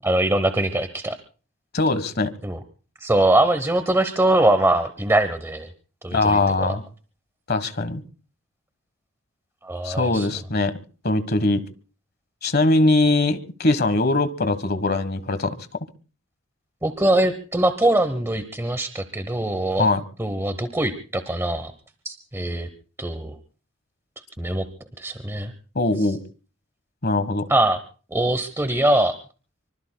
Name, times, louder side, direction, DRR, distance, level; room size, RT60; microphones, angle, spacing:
voice 1, 0.0-1.2 2.4-2.6 3.0-5.7 6.0-6.8 9.6-10.3 16.8-19.9 20.2-21.7 22.0-22.7 23.0-23.3 24.4-24.6 25.0-25.5 27.5-27.8 28.1-29.1, right 1 dB, 10° right, 0.9 m, -22 dB
voice 2, 1.7-2.3 6.1-6.8 7.5-8.0 9.8-10.8 11.0-11.6 12.4-15.6 19.8-20.0 25.7-26.2 27.0-27.4, left 2 dB, 45° left, 1.4 m, -21 dB
25.0 x 24.5 x 2.3 m
head